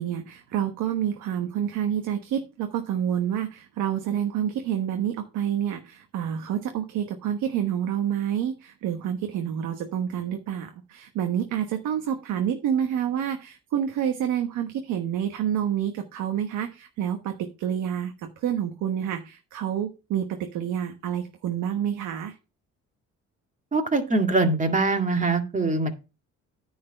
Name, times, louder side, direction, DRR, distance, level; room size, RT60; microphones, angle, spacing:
voice 1, 0.0-22.3, right 9 dB, 90° right, 1.2 m, -28 dB
voice 2, 23.7-25.9, right 3 dB, 25° right, 2.0 m, -23 dB
9.8 x 4.7 x 5.5 m
cardioid pair, 90°, 30 cm